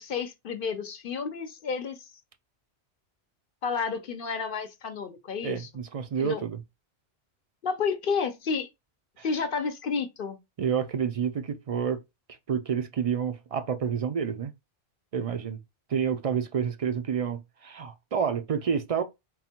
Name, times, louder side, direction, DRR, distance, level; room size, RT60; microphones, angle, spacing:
voice 1, 0.0-2.1 3.6-5.7 6.2-6.4 7.6-8.7 9.2-10.4, left 5 dB, 60° left, 0.7 m, -31 dB
voice 2, 5.4-6.6 9.2-9.3 10.6-12.0 12.5-14.5 15.1-15.6 15.9-19.0, right 7 dB, 45° right, 0.5 m, -29 dB
3.9 x 2.1 x 4.3 m
omnidirectional pair, 1.1 m